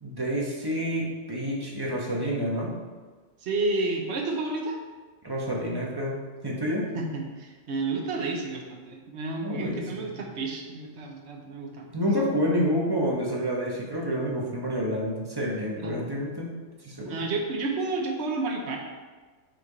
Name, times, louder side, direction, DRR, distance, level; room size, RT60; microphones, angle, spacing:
voice 1, 0.0-2.7 5.2-6.2 6.4-6.9 9.4-10.1 11.9-16.5 16.8-17.1, equal, 20° right, -3 dB, 1.1 m, -28 dB
voice 2, 3.4-4.8 6.9-12.0 15.8-16.0 17.0-18.8, right 3 dB, 60° right, 1 dB, 1.2 m, -31 dB
6.4 x 4.5 x 4.0 m, 1.4 s
omnidirectional pair, 1.3 m